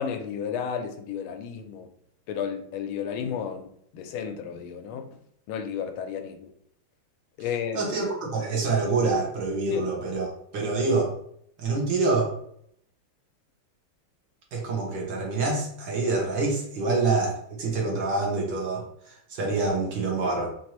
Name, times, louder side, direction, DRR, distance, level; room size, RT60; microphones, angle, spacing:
voice 1, 0.0-1.9 2.3-5.2 5.5-6.5 7.4-7.9 9.7-9.9, left 7 dB, 85° left, 1.4 m, -32 dB
voice 2, 7.7-10.3 10.5-11.1 11.6-12.3 14.5-20.5, right 3 dB, 65° right, 1.6 m, -26 dB
4.4 x 2.6 x 3.0 m
omnidirectional pair, 2.2 m